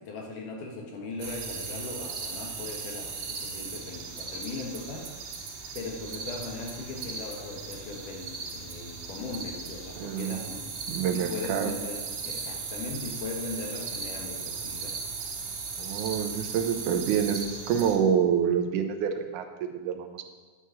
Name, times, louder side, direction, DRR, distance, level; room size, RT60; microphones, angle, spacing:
voice 1, 0.0-5.1 5.7-10.7 11.1-14.9, left 3 dB, 85° left, 0 dB, 3.1 m, -39 dB
sound 1, 1.2-18.0, right 5 dB, 60° right, 2.6 m, -37 dB
voice 2, 10.0-10.4 10.9-11.8 15.8-20.2, right 8 dB, 80° right, 6 dB, 2.3 m, -27 dB
9.8 x 6.5 x 7.1 m, 1.4 s
omnidirectional pair, 3.6 m